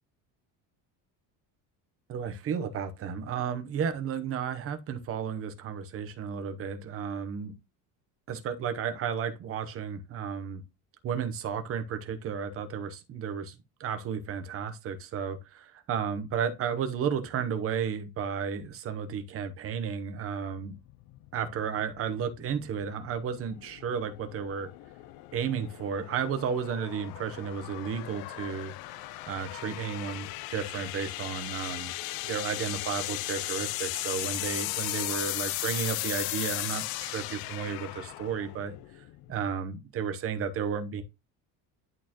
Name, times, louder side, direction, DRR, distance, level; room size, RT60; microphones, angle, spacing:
voice 1, 2.1-7.5 8.3-10.6 11.0-13.5 13.8-20.7 21.3-24.7 25.3-31.9 32.3-38.8 39.3-41.0, right 7 dB, 35° right, 0.9 m, -33 dB
sound 1, 20.6-39.6, left 17 dB, 65° left, 0.5 m, -37 dB
11.0 x 4.4 x 2.9 m
cardioid pair, 170°, 40 cm